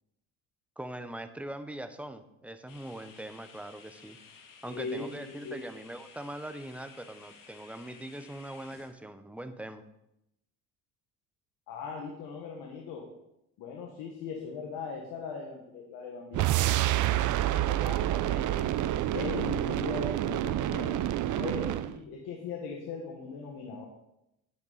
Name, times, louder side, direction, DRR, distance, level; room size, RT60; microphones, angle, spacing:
voice 1, 0.8-4.2 4.6-9.8, right 1 dB, 5° right, 9 dB, 0.9 m, -42 dB
sound 1, 2.7-8.9, left 5 dB, 65° left, 2.1 m, -54 dB
voice 2, 4.7-5.6 11.7-13.1 13.6-18.7 19.1-21.1 21.4-23.9, left 5 dB, 85° left, 0 dB, 1.7 m, -39 dB
sound 2, 16.3-22.0, right 13 dB, 60° right, 0.6 m, -28 dB
10.5 x 8.4 x 4.2 m, 0.85 s
supercardioid pair, 80°, 34 cm